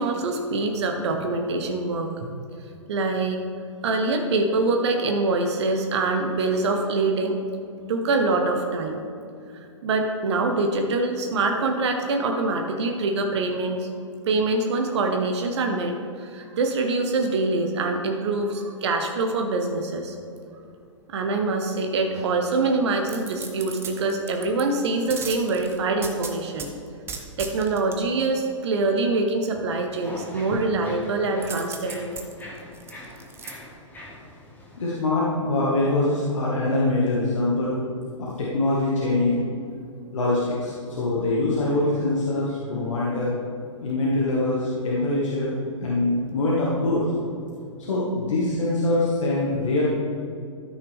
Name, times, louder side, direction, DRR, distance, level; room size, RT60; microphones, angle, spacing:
voice 1, 0.0-2.4 2.9-3.4 3.8-7.3 7.9-9.0 9.8-13.9 14.3-20.1 21.1-26.7 27.4-32.1, right 3 dB, 55° right, 4 dB, 1.0 m, -24 dB
sound 1, 23.1-24.6 25.1-26.7 27.1-28.0 31.4-33.5 34.0-34.1, right 5 dB, 15° right, 0.9 m, -36 dB
sound 2, 29.9-35.0, left 1 dB, 10° left, 2.1 m, -42 dB
voice 2, 34.8-37.8 38.2-39.4 40.1-43.3 43.8-45.5 45.8-47.1 47.9-49.8, left 2 dB, 70° left, -6 dB, 1.9 m, -24 dB
13.5 x 5.9 x 3.5 m, 2.5 s
figure-of-eight pair, 115°, 17 cm